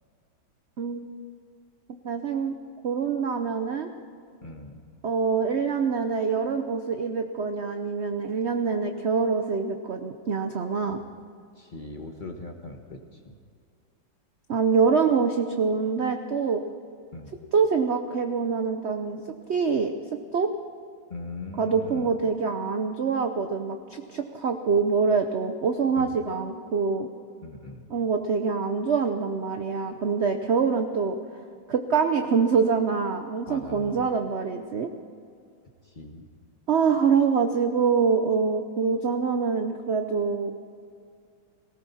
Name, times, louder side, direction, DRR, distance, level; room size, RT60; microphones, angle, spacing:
voice 1, 1.9-2.5 2.8-3.9 5.0-11.0 14.5-16.6 17.5-19.2 19.5-19.9 20.3-20.5 21.6-27.1 27.9-31.2 31.7-34.9 36.7-40.5, right 5 dB, 60° right, 6 dB, 0.7 m, -25 dB
voice 2, 4.4-4.8 11.5-13.4 17.1-17.4 21.1-22.2 26.0-26.1 27.4-27.8 33.5-34.1 35.8-36.3, left 2 dB, 30° left, 3 dB, 1.2 m, -40 dB
18.5 x 18.5 x 4.2 m, 2.3 s
omnidirectional pair, 2.1 m